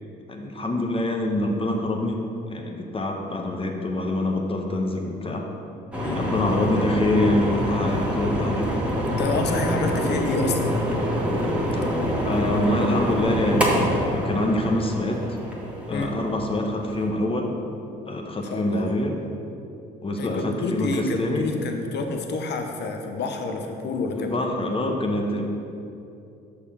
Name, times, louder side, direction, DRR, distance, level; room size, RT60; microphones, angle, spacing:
voice 1, 0.3-2.2 2.5-5.4 6.1-8.7 11.7-11.9 12.2-15.2 15.9-17.6 18.0-19.1 20.0-21.5 24.2-25.4, left 1 dB, 25° left, 2 dB, 1.1 m, -25 dB
sound 1, 5.9-17.0, equal, 5° right, 1.8 m, -26 dB
voice 2, 9.0-10.8 15.9-16.1 18.4-18.9 20.2-24.3, left 3 dB, 55° left, 4 dB, 1.0 m, -28 dB
6.6 x 5.5 x 4.9 m, 2.7 s
hypercardioid pair, 60°, 21 cm